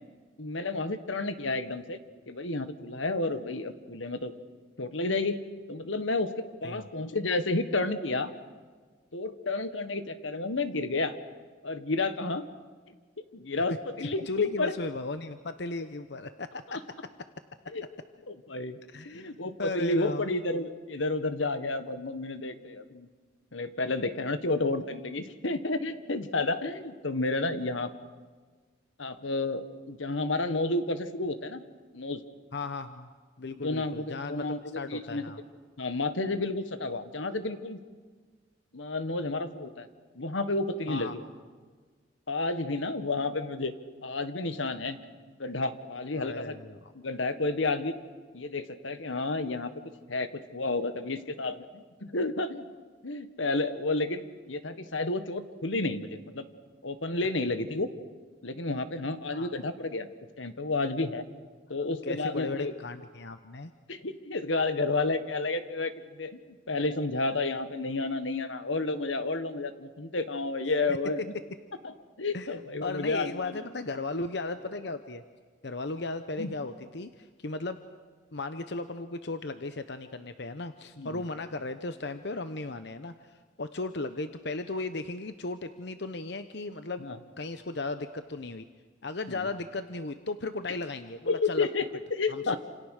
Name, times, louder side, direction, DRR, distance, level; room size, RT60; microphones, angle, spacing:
voice 1, 0.4-2.0 2.3-4.3 4.8-5.4 5.7-6.3 6.6-8.3 9.1-11.2 11.6-12.5 13.3-14.7 16.7-16.8 17.7-17.8 18.3-18.8 19.0-23.1 23.5-27.9 29.0-31.6 31.9-32.2 33.6-35.2 35.8-37.8 38.7-39.9 40.1-41.2 42.3-43.7 44.0-45.0 45.4-46.6 46.9-47.9 48.3-49.7 50.1-52.7 53.0-56.5 56.8-57.9 58.4-60.1 60.4-61.2 61.7-62.7 63.9-66.4 66.7-71.2 71.8-73.5 76.4-76.5 81.0-81.2 87.0-87.2 89.3-89.5 91.3-92.6, left 2 dB, 85° left, 10 dB, 1.6 m, -31 dB
voice 2, 14.3-16.8 18.9-19.3 19.6-20.3 32.5-33.1 33.4-34.5 34.7-35.4 40.9-41.1 46.2-46.9 59.3-59.5 61.7-63.7 72.3-75.2 75.6-77.8 78.3-87.1 87.4-88.6 89.0-91.7 92.3-92.6, left 3 dB, 60° left, 10 dB, 1.0 m, -36 dB
29.0 x 27.5 x 6.6 m, 1.5 s
head